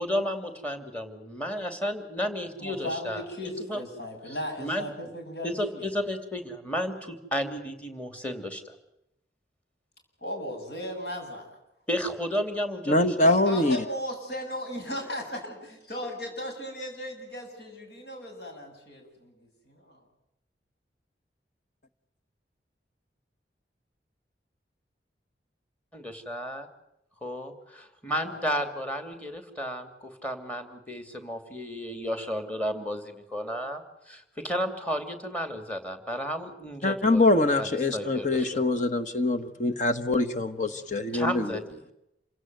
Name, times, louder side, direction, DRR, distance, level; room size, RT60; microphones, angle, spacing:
voice 1, 0.0-3.8 4.3-4.9 5.4-8.7 11.9-13.3 25.9-26.7 27.2-37.2 37.6-38.6 41.1-41.8, equal, 10° left, 8 dB, 2.7 m, -33 dB
voice 2, 2.6-5.9 10.2-11.6 13.4-15.5 15.9-20.0 28.2-28.4, left 1 dB, 70° left, 3 dB, 7.9 m, -37 dB
voice 3, 12.9-13.8 36.8-41.6, left 2 dB, 45° left, 8 dB, 1.2 m, -24 dB
28.0 x 17.0 x 9.3 m, 0.87 s
head